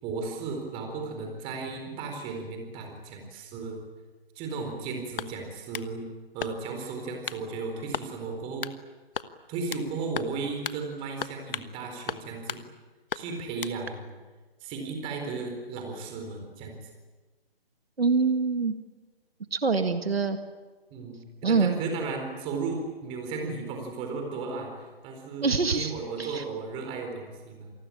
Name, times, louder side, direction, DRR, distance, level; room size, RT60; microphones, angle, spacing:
voice 1, 0.0-3.8 4.3-6.0 6.3-8.7 9.5-12.6 13.1-14.1 14.6-16.8 20.9-24.7 25.0-27.7, right 4 dB, 15° right, 3 dB, 4.3 m, -35 dB
sound 1, 5.2-5.9 6.4-6.8 7.3-7.5 7.9-8.1 8.6-8.8 9.1-9.9 10.2-10.4 10.6-10.8 11.2-11.7 12.1-12.6 13.1-13.8, left 6 dB, 60° left, 1.3 m, -36 dB
voice 2, 18.0-18.8 19.5-20.4 21.4-21.7 25.4-25.9 26.2-26.4, right 4 dB, 75° right, 8 dB, 1.9 m, -24 dB
27.5 x 20.0 x 8.8 m, 1.3 s
figure-of-eight pair, 150°, 30 cm